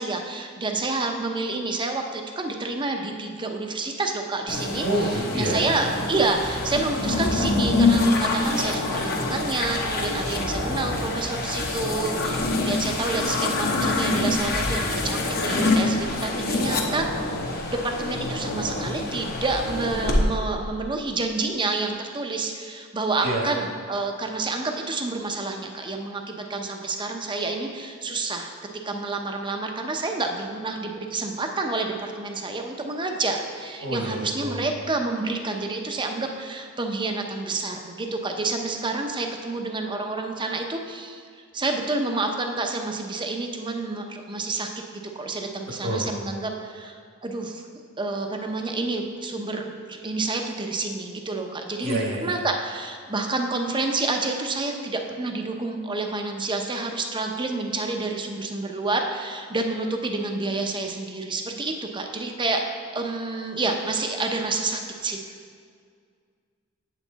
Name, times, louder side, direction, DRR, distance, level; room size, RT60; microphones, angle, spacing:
voice 1, 0.0-17.4 17.7-28.5 28.8-41.2 41.5-47.6 48.0-65.2, right 3 dB, 25° right, 3 dB, 0.7 m, -29 dB
sound 1, 4.5-20.2, left 2 dB, 45° left, 1.0 m, -25 dB
voice 2, 4.8-5.6 23.2-23.5 33.8-34.6 45.8-46.1 51.8-52.3, right 1 dB, 65° right, -1 dB, 1.6 m, -27 dB
8.3 x 8.0 x 4.0 m, 2.1 s
head